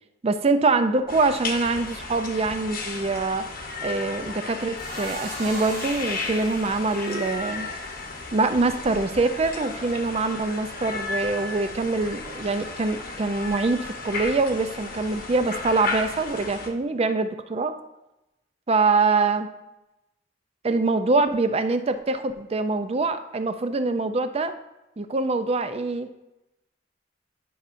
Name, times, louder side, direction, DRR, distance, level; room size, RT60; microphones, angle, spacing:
voice 1, 0.2-3.5 3.8-7.7 8.3-17.8 18.7-19.5 20.6-24.5 25.0-26.1, right 3 dB, 35° right, 10 dB, 0.4 m, -24 dB
sound 1, 1.1-16.7, left 3 dB, 50° left, 0.9 m, -34 dB
Hiss, 4.8-9.3, right 3 dB, 85° right, 2.4 m, -43 dB
11.0 x 5.6 x 2.6 m, 0.95 s
head